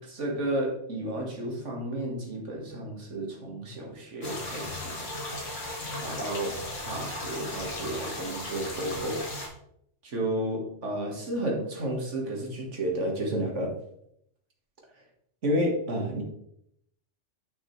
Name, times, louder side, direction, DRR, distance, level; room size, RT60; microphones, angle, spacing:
voice 1, 0.0-5.1 6.0-9.3 10.0-13.7 15.4-16.2, right 1 dB, 65° right, 0 dB, 2.0 m, -31 dB
sound 1, 4.2-9.5, left 2 dB, 70° left, 2.1 m, -36 dB
9.2 x 5.9 x 3.2 m, 0.75 s
omnidirectional pair, 1.3 m